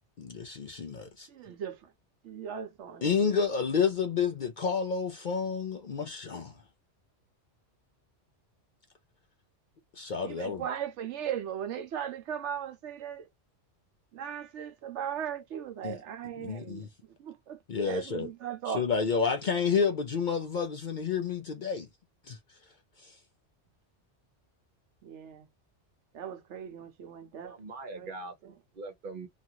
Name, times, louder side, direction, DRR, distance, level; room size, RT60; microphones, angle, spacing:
voice 1, 0.2-1.3 3.0-6.5 10.0-10.6 15.8-16.0 16.4-16.9 17.7-18.3 18.7-21.9 22.3-22.4 23.0-23.1, left 6 dB, 55° left, 0.6 m, -30 dB
voice 2, 1.3-1.8 2.2-3.1 10.2-13.3 14.1-16.9 17.2-17.6 17.8-18.8 25.0-25.5 26.1-27.6 27.9-28.1 28.4-28.5, right 9 dB, 75° right, 1.0 m, -38 dB
voice 3, 27.4-29.3, right 3 dB, 50° right, 1.1 m, -42 dB
3.0 x 2.5 x 2.8 m
omnidirectional pair, 1.2 m